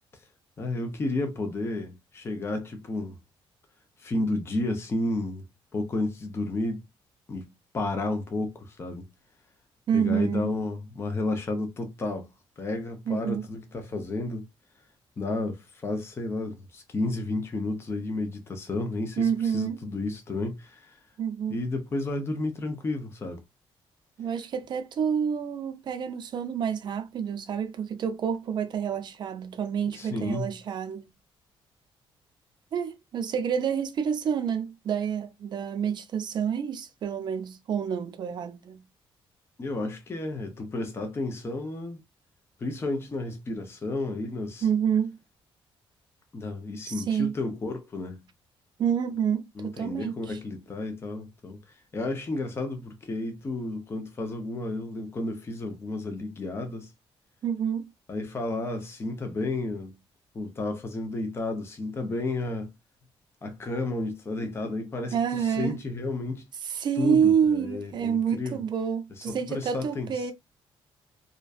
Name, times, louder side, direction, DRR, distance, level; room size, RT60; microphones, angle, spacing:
voice 1, 0.6-3.2 4.0-5.4 5.7-6.8 7.3-7.5 7.7-9.1 9.9-12.3 12.6-14.5 15.2-21.0 21.5-23.4 29.9-30.5 39.6-42.0 42.6-44.7 46.3-48.2 49.6-56.9 58.1-60.0 60.3-62.7 63.4-66.4 67.0-68.6 69.3-70.3, left 2 dB, 25° left, 0.5 m, -32 dB
voice 2, 9.9-10.5 13.1-13.5 19.2-19.8 21.2-21.6 24.2-31.1 32.7-38.8 44.6-45.1 46.9-47.4 48.8-50.4 57.4-57.9 65.1-65.8 66.6-70.3, right 7 dB, 50° right, 0.4 m, -28 dB
2.5 x 2.2 x 2.3 m
cardioid pair, 125°, 10 cm